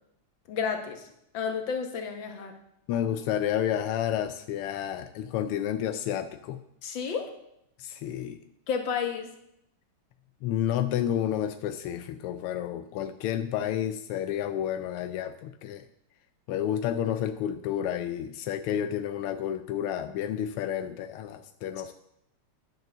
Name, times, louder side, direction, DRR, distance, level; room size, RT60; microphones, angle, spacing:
voice 1, 0.5-1.1 1.3-2.6 6.8-7.3 8.7-9.3, left 6 dB, 60° left, 5 dB, 2.1 m, -31 dB
voice 2, 2.9-6.6 7.8-8.4 10.4-15.9 16.5-21.9, left 10 dB, 90° left, 9 dB, 1.6 m, -30 dB
10.5 x 7.6 x 6.7 m, 0.77 s
omnidirectional pair, 2.4 m